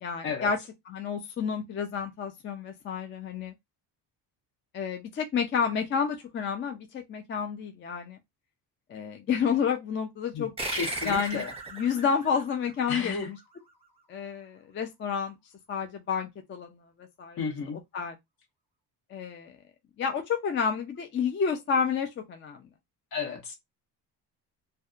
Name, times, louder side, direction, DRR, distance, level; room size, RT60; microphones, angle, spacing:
voice 1, 0.0-0.6 0.9-3.5 4.7-8.2 8.9-10.5 11.0-11.4 11.7-13.4 14.1-15.3 15.7-16.7 17.2-17.4 17.9-18.1 19.1-19.5 20.0-22.6, left 6 dB, 30° left, 0.4 m, -30 dB
voice 2, 10.3-11.5 12.9-13.3 17.4-17.8 23.1-23.5, left 5 dB, 60° left, 1.1 m, -33 dB
sound 1, 10.6-13.6, right 2 dB, 15° right, 0.7 m, -37 dB
2.6 x 2.2 x 2.4 m
cardioid pair, 115°, 40 cm